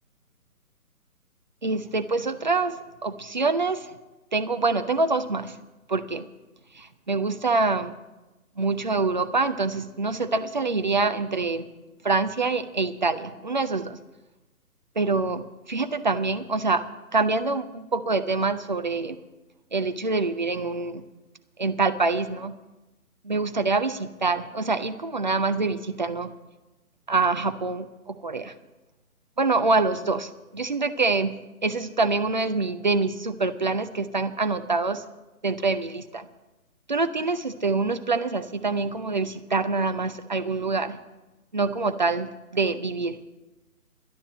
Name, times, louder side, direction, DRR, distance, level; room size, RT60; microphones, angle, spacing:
voice 1, 1.6-3.9 4.3-5.6 5.9-6.3 6.7-7.9 8.6-11.7 12.0-14.0 15.0-16.8 17.1-19.2 19.7-21.0 21.6-22.5 23.2-26.3 27.1-28.5 29.4-31.4 31.6-35.0 35.4-36.3 36.9-41.0 41.5-43.2, right 3 dB, 30° right, 10 dB, 0.5 m, -25 dB
11.5 x 9.7 x 7.8 m, 1.1 s
figure-of-eight pair, 145°, 45 cm